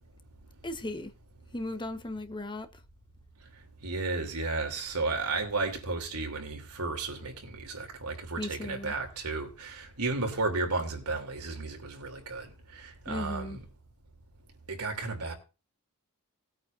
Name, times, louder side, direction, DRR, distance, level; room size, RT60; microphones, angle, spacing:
voice 1, 0.6-1.1 1.5-2.8 8.4-8.9 13.1-13.6, left 1 dB, 20° left, 1.2 m, -37 dB
voice 2, 3.8-12.5 12.8-13.6 14.7-15.3, right 3 dB, 85° right, 3.1 m, -33 dB
19.5 x 9.0 x 2.6 m
head